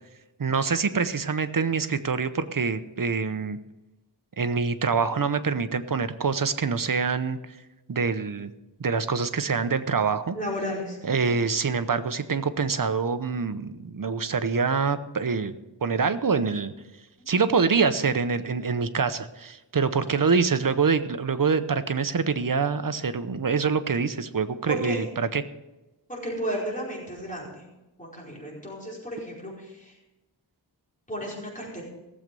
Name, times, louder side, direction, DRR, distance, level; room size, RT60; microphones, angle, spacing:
voice 1, 0.4-3.6 4.4-7.4 7.9-8.5 8.8-10.3 11.0-15.6 15.8-16.7 17.3-25.4, right 5 dB, 45° right, 11 dB, 0.9 m, -25 dB
voice 2, 10.3-11.3 24.7-25.1 26.1-27.7 28.0-29.9 31.1-31.8, equal, 15° left, -4 dB, 4.8 m, -33 dB
17.5 x 7.6 x 5.3 m, 1.0 s
wide cardioid pair, 80°, 44 cm